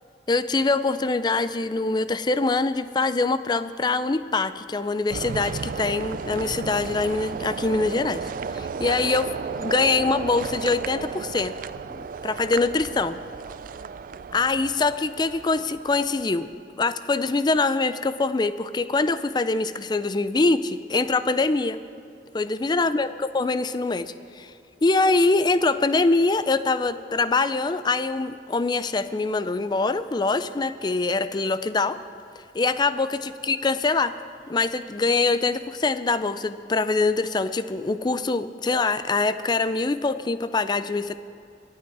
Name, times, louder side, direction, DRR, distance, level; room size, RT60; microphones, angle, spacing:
voice 1, 0.3-9.3 9.6-11.5 11.9-13.2 14.3-16.5 16.8-21.8 22.3-24.5 24.8-32.0 32.5-34.1 34.5-41.1, left 3 dB, 25° left, 13 dB, 0.4 m, -24 dB
sound 1, 5.1-16.3, right 5 dB, 50° right, 0.3 m, -34 dB
24.0 x 8.6 x 4.7 m, 2.3 s
head